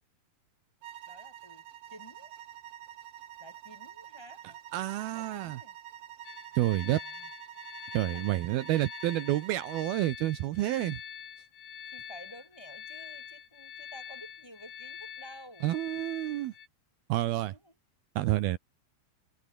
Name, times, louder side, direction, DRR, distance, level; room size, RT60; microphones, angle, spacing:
sound 1, 0.8-10.0, right 11 dB, 60° right, 2.0 m, -47 dB
voice 1, 1.0-1.6 1.9-2.3 3.4-4.6 5.1-5.8 6.6-7.3 7.8-8.6 11.8-15.7 17.3-17.7, equal, 5° left, 6.5 m, -52 dB
voice 2, 4.7-5.6 6.6-7.0 7.9-11.0 15.6-16.5 17.1-17.5 18.2-18.6, right 15 dB, 75° right, 2.8 m, -29 dB
sound 2, 6.2-16.7, left 8 dB, 80° left, 5.3 m, -45 dB
omnidirectional pair, 4.6 m